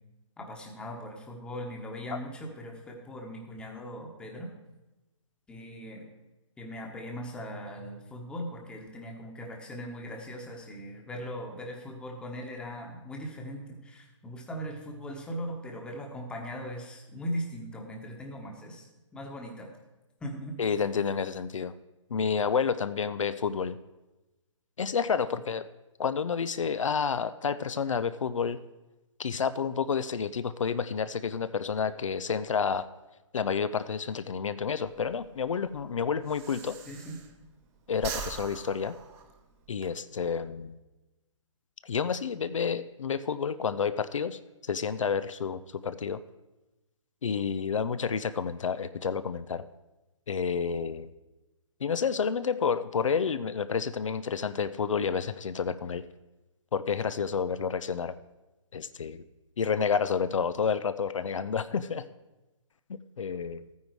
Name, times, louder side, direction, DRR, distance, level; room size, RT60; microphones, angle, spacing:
voice 1, 0.4-4.5 5.5-6.1 6.6-19.7 20.2-20.7 36.9-37.2, equal, 5° left, 2 dB, 1.2 m, -39 dB
voice 2, 20.6-21.7 22.1-23.8 24.8-25.7 26.0-28.6 29.2-32.8 33.3-36.8 37.9-38.9 39.7-40.8 41.8-46.2 47.2-49.6 50.3-51.1 51.8-56.0 56.7-58.1 58.7-59.2 59.6-62.0 62.9-63.6, left 6 dB, 75° left, 13 dB, 0.6 m, -30 dB
Breathing, 34.8-37.6 37.9-39.9, right 6 dB, 15° right, 0.9 m, -41 dB
13.0 x 9.4 x 4.7 m, 1.1 s
hypercardioid pair, 150°, 16 cm